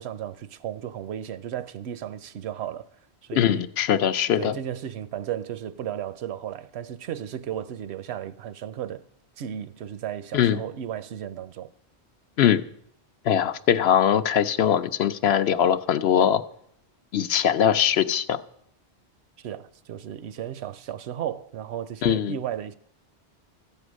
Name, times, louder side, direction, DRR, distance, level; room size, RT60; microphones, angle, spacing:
voice 1, 0.0-2.9 3.2-3.7 4.3-9.0 9.4-11.7 19.4-22.8, right 10 dB, 75° right, 0.9 m, -34 dB
voice 2, 3.4-4.6 10.3-10.6 12.4-12.6 13.3-16.4 17.1-18.4 22.0-22.4, left 9 dB, 75° left, 0.9 m, -21 dB
13.5 x 8.6 x 6.2 m
omnidirectional pair, 1.1 m